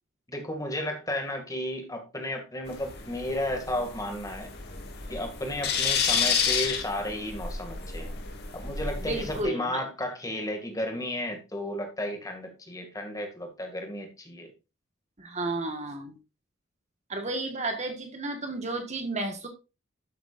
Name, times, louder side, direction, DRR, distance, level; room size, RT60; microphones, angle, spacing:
voice 1, 0.3-4.5 5.1-8.2 8.5-14.5, left 1 dB, 15° left, 3 dB, 2.2 m, -33 dB
sound 1, 2.7-9.4, left 6 dB, 50° left, 2.2 m, -31 dB
voice 2, 9.0-9.8 15.2-16.2 17.1-19.5, right 2 dB, 35° right, 5 dB, 1.5 m, -32 dB
12.0 x 8.0 x 2.5 m, 0.29 s
head